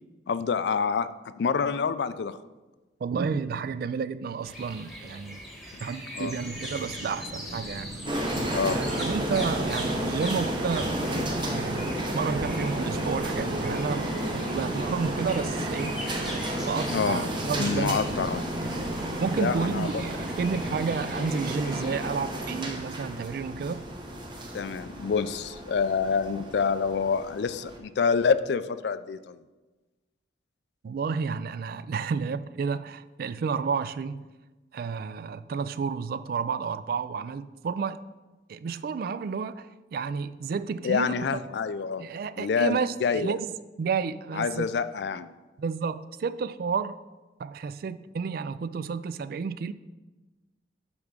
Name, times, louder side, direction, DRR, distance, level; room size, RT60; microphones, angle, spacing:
voice 1, 0.3-2.4 6.2-6.3 8.5-9.1 16.9-17.3 17.6-18.4 19.4-20.0 24.5-29.4 40.8-42.0 42.4-43.4 44.3-45.3, left 5 dB, 65° left, 13 dB, 0.4 m, -27 dB
voice 2, 3.0-5.5 5.8-7.9 8.7-10.9 11.4-14.1 14.3-16.0 16.3-16.4 16.6-18.0 19.2-23.9 30.8-34.3 34.7-38.0 38.5-41.4 42.0-43.5 43.8-44.7 45.6-47.0 47.4-49.7, right 5 dB, 55° right, 15 dB, 0.3 m, -31 dB
sound 1, 4.4-22.1, equal, ahead, 1.3 m, -42 dB
sound 2, 6.4-21.0, right 2 dB, 85° right, 0.7 m, -42 dB
sound 3, 8.1-27.8, right 1 dB, 25° right, 0.9 m, -32 dB
8.5 x 3.5 x 6.6 m, 1.2 s
head